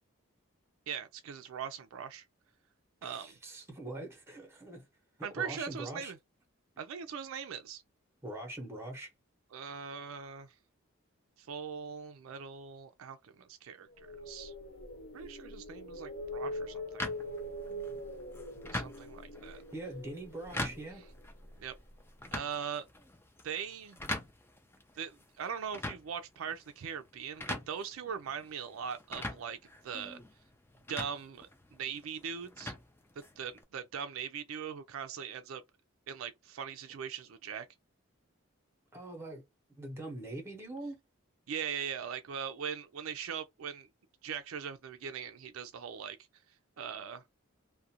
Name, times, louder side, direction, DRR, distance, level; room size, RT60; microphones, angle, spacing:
voice 1, 0.9-2.2 3.0-3.4 5.2-6.2 6.8-7.8 9.5-10.5 11.4-14.5 15.1-16.8 18.7-19.6 21.6-21.8 22.3-22.9 23.4-24.0 25.0-29.6 29.8-30.2 30.9-32.7 33.4-35.6 36.1-37.7 41.5-43.9 44.2-46.2 46.8-47.2, right 7 dB, 75° right, 0.4 m, -40 dB
voice 2, 3.0-4.9 5.4-6.1 8.2-9.1 15.2-15.3 19.5-21.0 38.9-39.4 39.7-41.0, right 2 dB, 10° right, 0.8 m, -43 dB
sound 1, 13.9-22.0, left 1 dB, 60° left, 1.1 m, -43 dB
sound 2, 17.0-33.6, left 1 dB, 10° left, 0.3 m, -44 dB
2.4 x 2.1 x 2.7 m
head